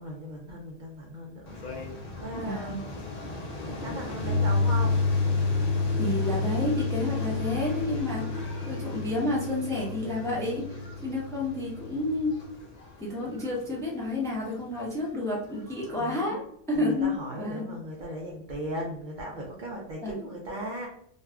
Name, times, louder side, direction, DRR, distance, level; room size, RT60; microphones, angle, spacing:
voice 1, 0.0-2.8 3.7-5.0 15.9-16.4 16.7-20.9, right 1 dB, 55° right, -2 dB, 0.5 m, -38 dB
sound 1, 1.5-16.1, left 1 dB, 75° left, 0.3 m, -40 dB
voice 2, 2.3-2.8 6.0-10.6 11.0-12.4 13.0-16.4 16.7-17.1 17.4-17.7 20.0-20.1, left 2 dB, 5° left, -4 dB, 0.5 m, -30 dB
Piano, 4.2-12.3, left 3 dB, 55° left, 0.9 m, -29 dB
2.6 x 2.3 x 3.3 m, 0.70 s
omnidirectional pair, 1.4 m